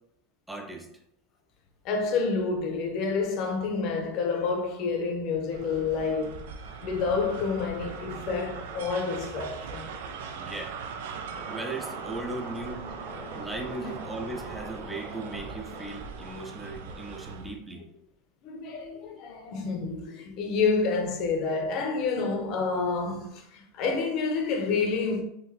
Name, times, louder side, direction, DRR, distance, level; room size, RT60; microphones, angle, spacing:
voice 1, 0.5-0.9 10.4-10.8 11.5-12.8 13.3-17.8, right 2 dB, 5° right, 0.5 m, -37 dB
voice 2, 1.8-6.5 6.8-9.9 13.8-14.0 18.4-25.2, left 4 dB, 45° left, 0.7 m, -29 dB
sound 1, 5.5-17.6, right 5 dB, 80° right, 0.4 m, -40 dB
sound 2, 11.3-17.1, right 1 dB, 40° right, 1.2 m, -43 dB
3.9 x 2.5 x 2.8 m
supercardioid pair, 150°, 0 cm